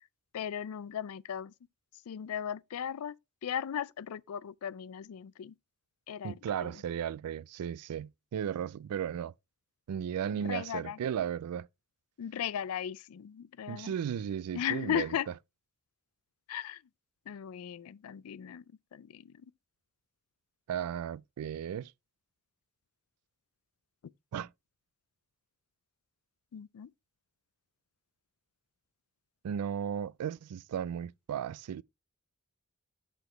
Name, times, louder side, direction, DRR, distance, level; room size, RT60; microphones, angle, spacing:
voice 1, 0.3-1.5 2.1-3.1 3.4-5.5 6.1-6.3 6.6-6.7 10.4-11.0 12.2-13.9 14.5-15.3 16.5-16.8 17.3-18.6 18.9-19.2 26.5-26.9, left 9 dB, 75° left, 0.4 m, -36 dB
voice 2, 6.2-9.3 9.9-11.7 13.7-15.2 20.7-21.9 24.3-24.5 29.4-31.8, right 8 dB, 90° right, 0.3 m, -35 dB
6.9 x 6.1 x 3.1 m
head